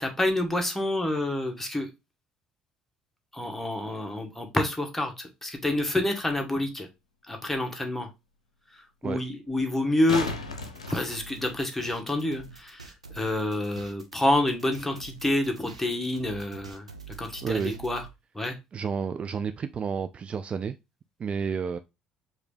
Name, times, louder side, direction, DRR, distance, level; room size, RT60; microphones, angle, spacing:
voice 1, 0.0-1.9 3.3-6.9 7.3-8.1 9.0-10.3 10.9-16.9 17.2-18.0 18.3-18.5, left 1 dB, 10° left, 1.3 m, -28 dB
sound 1, 6.9-7.0 9.7-11.9 14.7-14.8, left 3 dB, 85° left, 0.5 m, -35 dB
sound 2, 10.4-18.1, right 4 dB, 90° right, 0.5 m, -46 dB
voice 2, 17.4-17.8 18.7-20.8 21.2-21.8, right 6 dB, 35° right, 0.3 m, -30 dB
4.7 x 2.7 x 3.3 m
figure-of-eight pair, 55°, 3 cm